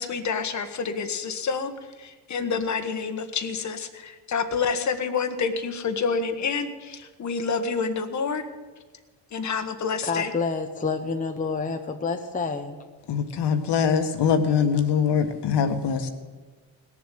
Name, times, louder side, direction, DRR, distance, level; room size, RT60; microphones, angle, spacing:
voice 1, 0.0-1.7 2.0-8.4 9.3-10.3, left 5 dB, 35° left, 1.4 m, -28 dB
voice 2, 10.1-12.8, left 4 dB, 15° left, 0.9 m, -28 dB
voice 3, 13.1-16.1, left 7 dB, 55° left, 1.7 m, -23 dB
18.0 x 7.4 x 9.2 m
cardioid pair, 110°, 48 cm